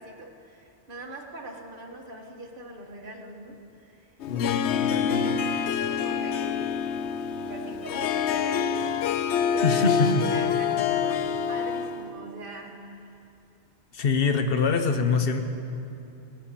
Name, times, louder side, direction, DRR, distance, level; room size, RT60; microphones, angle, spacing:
voice 1, 0.0-4.1 4.8-6.8 7.4-8.8 9.4-13.2, right 2 dB, 50° right, 1 dB, 1.6 m, -42 dB
Harp, 4.2-12.1, left 7 dB, 85° left, 0.9 m, -26 dB
voice 2, 4.3-5.3 9.6-10.3 13.9-15.4, left 4 dB, 60° left, 7 dB, 1.1 m, -24 dB
16.0 x 9.3 x 7.4 m, 2.6 s
omnidirectional pair, 1.2 m